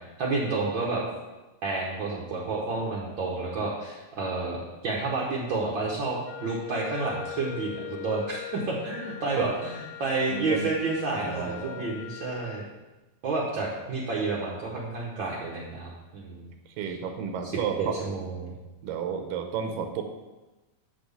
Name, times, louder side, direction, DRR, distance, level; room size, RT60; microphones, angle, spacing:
voice 1, 0.2-1.0 1.6-12.6 13.2-16.5 16.8-16.9 17.8-18.6, right 3 dB, 70° right, -4 dB, 1.1 m, -30 dB
Wind instrument woodwind instrument, 6.3-12.7, left 13 dB, 90° left, 2.3 m, -41 dB
voice 2, 10.3-10.7 11.2-11.9 16.8-18.0 18.8-20.0, right 7 dB, 90° right, 5 dB, 2.5 m, -31 dB
6.4 x 6.0 x 7.0 m, 1.1 s
omnidirectional pair, 3.8 m